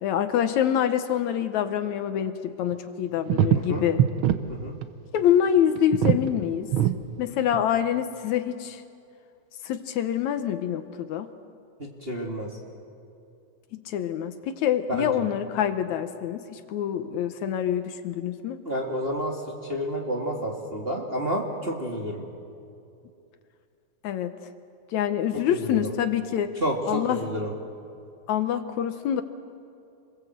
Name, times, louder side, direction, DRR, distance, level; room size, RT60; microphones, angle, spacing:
voice 1, 0.0-4.0 5.1-6.7 7.2-8.8 9.6-11.3 13.7-18.6 24.0-24.3 24.9-26.5 26.9-27.2 28.3-29.2, left 9 dB, 75° left, 9 dB, 2.1 m, -26 dB
sound 1, 2.7-2.8 3.3-4.4 4.7-4.9 5.2-5.3 5.8-6.3 6.7-6.9 7.5-7.6, right 11 dB, 75° right, 1.1 m, -22 dB
voice 2, 3.5-3.8 4.5-4.7 11.8-12.5 15.0-15.3 18.7-19.4 19.7-22.2 25.3-25.9 26.6-27.5, equal, 20° right, -1 dB, 1.8 m, -30 dB
27.0 x 21.5 x 7.9 m, 2.6 s
omnidirectional pair, 3.5 m